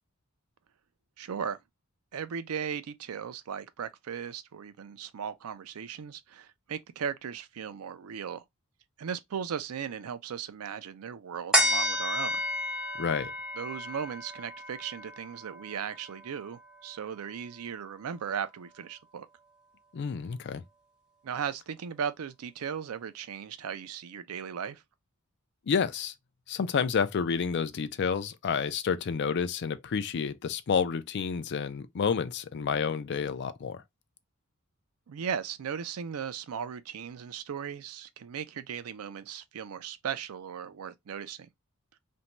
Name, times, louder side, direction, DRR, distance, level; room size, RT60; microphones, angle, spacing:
voice 1, 1.2-1.6 2.1-8.4 9.0-12.4 13.6-19.3 21.2-24.8 35.1-41.5, right 7 dB, 85° right, 0.4 m, -37 dB
sound 1, 11.5-18.3 18.7-18.8, left 1 dB, 5° right, 0.9 m, -32 dB
voice 2, 13.0-13.3 19.9-20.6 25.7-26.1 26.5-33.8, left 6 dB, 55° left, 0.4 m, -29 dB
2.6 x 2.1 x 3.0 m
head